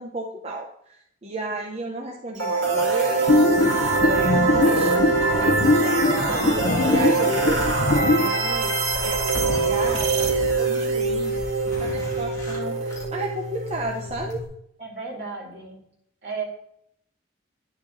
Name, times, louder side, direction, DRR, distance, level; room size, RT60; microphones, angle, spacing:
voice 1, 0.0-6.4 6.8-14.4, right 1 dB, 30° right, 0 dB, 0.7 m, -33 dB
sound 1, 2.4-14.2, right 4 dB, 75° right, 2.0 m, -24 dB
sound 2, 3.3-8.3, left 2 dB, 55° left, 0.5 m, -22 dB
Zipper (clothing), 7.2-14.4, left 2 dB, 15° left, 1.8 m, -34 dB
voice 2, 14.8-15.9 16.2-16.4, right 5 dB, 55° right, -2 dB, 2.9 m, -34 dB
11.5 x 7.3 x 2.6 m, 0.74 s
head